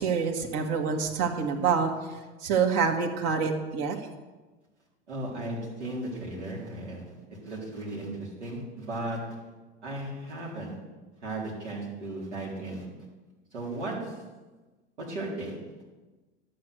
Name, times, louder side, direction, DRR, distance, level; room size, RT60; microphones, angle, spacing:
voice 1, 0.0-1.9 2.4-4.0, right 6 dB, 50° right, 4 dB, 1.9 m, -26 dB
voice 2, 5.1-7.0 7.4-9.2 9.8-10.8 11.2-12.9 13.5-13.9 15.0-15.5, right 1 dB, 80° right, -4 dB, 4.0 m, -35 dB
11.5 x 8.1 x 6.3 m, 1.2 s
figure-of-eight pair, 85°, 34 cm